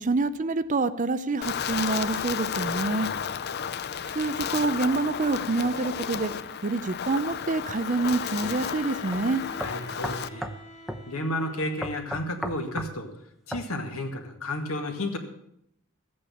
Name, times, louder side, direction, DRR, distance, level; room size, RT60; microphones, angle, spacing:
voice 1, 0.0-3.1 4.0-6.3 6.6-9.4, right 3 dB, 35° right, 13 dB, 0.5 m, -27 dB
Wind, 1.4-10.3, left 7 dB, 50° left, 0.5 m, -32 dB
voice 2, 2.9-3.2 9.6-10.5 11.1-13.1 13.5-15.2, left 1 dB, 80° left, 4 dB, 2.1 m, -32 dB
Bowed string instrument, 7.7-12.0, equal, 35° left, 2.7 m, -47 dB
sound 1, 8.4-8.6 9.1-9.2 9.6-10.6 10.9-11.1 11.8-12.9 13.5-13.7, equal, ahead, 0.8 m, -34 dB
14.0 x 8.6 x 7.1 m, 0.76 s
head